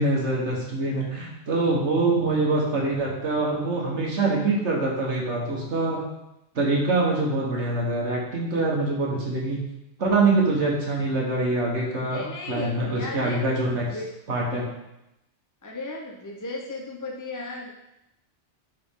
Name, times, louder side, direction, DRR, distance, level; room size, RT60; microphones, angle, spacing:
voice 1, 0.0-6.0 6.5-9.6 10.0-13.9 14.3-14.7, right 2 dB, 70° right, -3 dB, 1.6 m, -24 dB
voice 2, 12.1-13.4 13.7-14.1 15.6-17.7, left 2 dB, 25° left, -1 dB, 0.5 m, -35 dB
11.0 x 4.2 x 3.6 m, 0.89 s
omnidirectional pair, 1.2 m